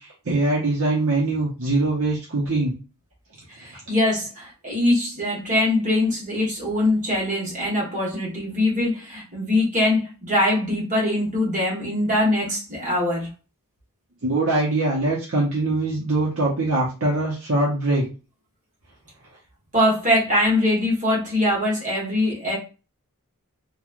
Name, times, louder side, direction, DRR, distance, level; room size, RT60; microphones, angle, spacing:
voice 1, 0.3-2.7 14.2-18.0, right 2 dB, 70° right, 0.8 m, -22 dB
voice 2, 3.6-13.3 19.7-22.6, left 1 dB, 35° right, 1.2 m, -22 dB
3.0 x 2.3 x 2.4 m
head